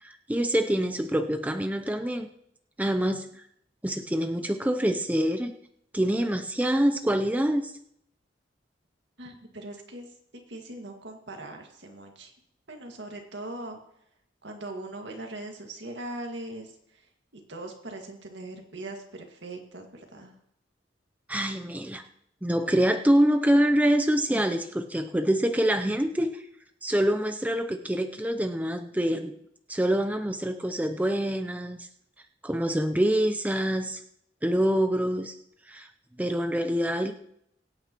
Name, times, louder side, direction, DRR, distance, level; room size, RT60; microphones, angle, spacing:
voice 1, 0.0-2.3 2.8-3.3 3.8-5.6 5.9-7.7 21.3-22.0 22.4-26.4 26.8-29.4 29.7-31.9 32.4-34.0 34.4-35.3 35.7-35.9 36.2-37.1, right 1 dB, 10° right, 6 dB, 0.5 m, -25 dB
voice 2, 9.2-12.3 12.7-13.8 14.4-17.1 17.3-20.4, right 2 dB, 80° right, 3 dB, 1.9 m, -40 dB
23.0 x 9.0 x 3.0 m, 0.74 s
head